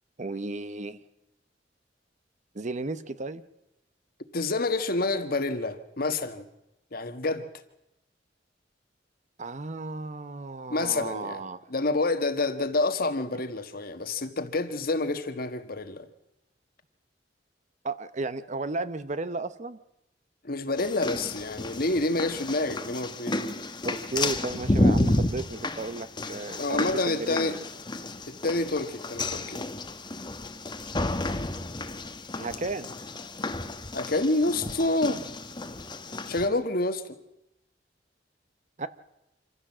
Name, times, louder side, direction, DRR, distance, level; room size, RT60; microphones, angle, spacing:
voice 1, 0.2-1.0 2.5-3.4 9.4-11.6 17.8-19.8 23.8-27.6 32.4-32.9 38.8-38.9, right 3 dB, 40° right, 14 dB, 0.8 m, -34 dB
voice 2, 4.3-6.5 6.9-7.4 10.7-11.4 11.7-16.1 20.4-23.5 26.6-27.6 28.3-29.6 33.9-35.2 36.3-37.2, left 2 dB, 55° left, 10 dB, 1.5 m, -28 dB
sound 1, 20.8-36.5, left 2 dB, 25° left, 1.1 m, -31 dB
26.0 x 15.0 x 7.3 m, 0.89 s
head